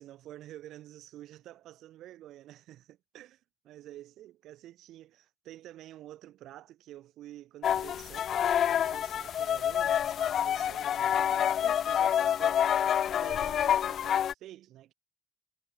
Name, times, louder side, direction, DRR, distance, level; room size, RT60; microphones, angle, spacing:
voice 1, 0.0-12.7 13.1-14.9, right 13 dB, 85° right, 5.4 m, -49 dB
sound 1, 7.6-14.3, left 9 dB, 65° left, 0.3 m, -27 dB
cardioid pair, 90°, 0 cm